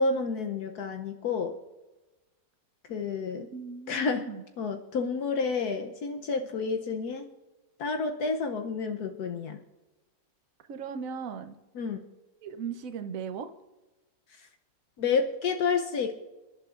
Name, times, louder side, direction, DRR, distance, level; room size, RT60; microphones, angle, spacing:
voice 1, 0.0-1.6 2.9-3.5 3.9-4.3 4.6-7.2 7.8-9.6 11.7-12.0 14.4-14.5 15.0-16.2, left 4 dB, 70° left, 5 dB, 1.3 m, -29 dB
voice 2, 3.5-4.4 10.7-11.6 12.4-13.5, right 6 dB, 60° right, 8 dB, 1.2 m, -37 dB
28.5 x 11.5 x 2.5 m, 1.1 s
omnidirectional pair, 1.8 m